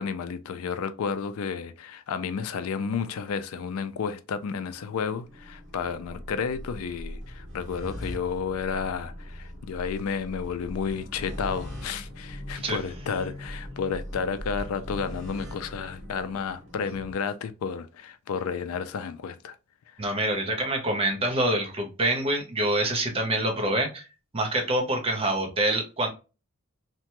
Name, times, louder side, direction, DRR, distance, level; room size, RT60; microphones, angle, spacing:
voice 1, 0.0-19.6, left 6 dB, 80° left, 0.4 m, -31 dB
sound 1, 4.5-17.1, equal, 55° right, 1.5 m, -40 dB
voice 2, 20.0-24.1 24.3-26.1, right 1 dB, 25° right, 0.7 m, -26 dB
2.9 x 2.2 x 2.9 m
head